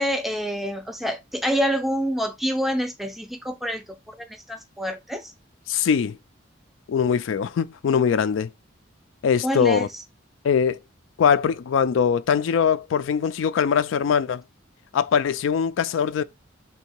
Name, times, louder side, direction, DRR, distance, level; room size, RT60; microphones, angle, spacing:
voice 1, 0.0-5.3 9.4-9.9, equal, ahead, 0.5 m, -27 dB
voice 2, 5.7-6.2 6.9-8.5 9.2-9.9 10.4-10.8 11.2-14.4 14.9-16.2, left 7 dB, 80° left, 0.3 m, -22 dB
3.6 x 2.7 x 4.4 m
head